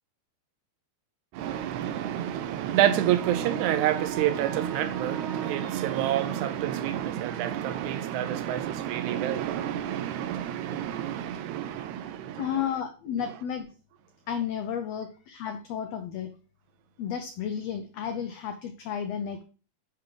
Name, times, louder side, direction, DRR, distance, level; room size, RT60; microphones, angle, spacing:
voice 1, 1.3-12.7, right 11 dB, 80° right, 1.9 m, -28 dB
voice 2, 12.4-13.7 14.3-16.3 17.0-19.4, left 8 dB, 90° left, 1.4 m, -32 dB
9.9 x 3.4 x 3.8 m
omnidirectional pair, 3.6 m